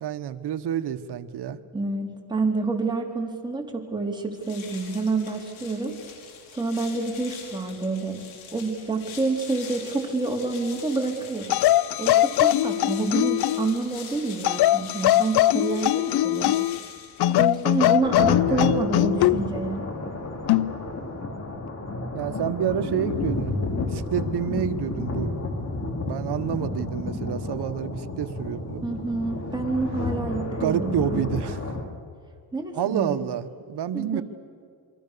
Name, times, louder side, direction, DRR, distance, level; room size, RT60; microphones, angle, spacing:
voice 1, 0.0-1.6 18.5-18.8 22.1-25.3 25.8-28.8 30.6-31.6 32.7-34.2, right 9 dB, 60° right, 11 dB, 1.3 m, -29 dB
voice 2, 1.7-6.0 6.5-8.2 8.5-11.6 12.0-16.6 17.2-19.8 28.8-31.2 32.5-33.2 33.9-34.2, right 3 dB, 10° right, 0 dB, 4.0 m, -28 dB
sound 1, 4.3-18.0, left 6 dB, 85° left, 5.3 m, -44 dB
sound 2, 11.5-13.7 14.4-16.8 17.2-19.4 20.5-20.7, left 14 dB, 55° left, 0.5 m, -21 dB
sound 3, 18.0-31.8, left 2 dB, 35° left, 3.7 m, -31 dB
28.0 x 24.0 x 6.9 m, 2.2 s
cardioid pair, 100°, 46 cm